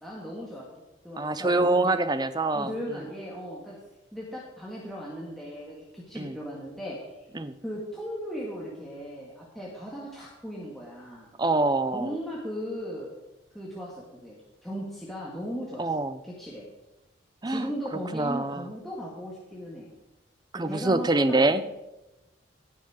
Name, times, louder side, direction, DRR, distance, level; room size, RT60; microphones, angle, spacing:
voice 1, 0.0-0.7 1.0-2.0 2.5-3.8 4.1-7.3 7.6-11.3 11.9-13.1 13.5-15.9 16.2-16.7 17.5-19.9 20.5-21.7, equal, ahead, -5 dB, 1.7 m, -37 dB
voice 2, 1.2-2.7 6.2-6.4 7.3-7.5 11.4-12.1 15.8-16.2 17.4-17.7 18.1-18.6 20.5-21.6, right 2 dB, 20° right, 12 dB, 0.5 m, -25 dB
18.0 x 6.4 x 5.0 m, 0.98 s
head